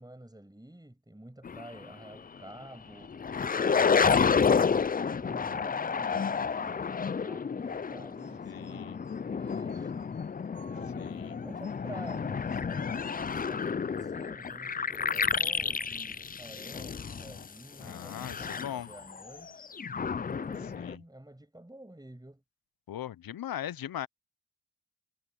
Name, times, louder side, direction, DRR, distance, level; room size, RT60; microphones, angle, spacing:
voice 1, 0.0-3.2 5.2-10.1 10.7-19.7 20.3-22.4, right 1 dB, 10° right, 6.3 m, -50 dB
sound 1, 1.4-1.8 2.4-2.5 3.0-17.5 17.8-20.9, left 6 dB, 25° left, 0.4 m, -30 dB
voice 2, 3.7-4.4 8.4-9.0 11.0-11.4 17.8-18.9 20.6-21.0 22.9-24.1, left 11 dB, 90° left, 0.6 m, -40 dB
sound 2, 8.2-15.1, right 2 dB, 40° right, 6.9 m, -62 dB
wide cardioid pair, 75°, 34 cm